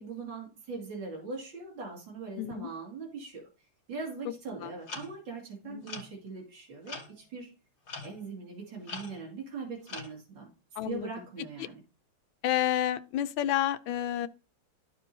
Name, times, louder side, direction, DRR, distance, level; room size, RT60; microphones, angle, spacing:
voice 1, 0.0-3.5 3.9-7.5 8.0-10.5 10.8-11.8, right 4 dB, 65° right, 3.1 m, -41 dB
voice 2, 2.4-2.7 4.6-4.7 5.7-5.8 10.8-11.1 12.4-14.3, left 12 dB, 75° left, 1.3 m, -30 dB
sound 1, 4.9-5.2 5.8-6.1 6.9-7.1 7.9-8.2 8.9-9.3 9.9-10.1, left 4 dB, 45° left, 2.3 m, -41 dB
13.5 x 4.5 x 2.7 m
omnidirectional pair, 2.3 m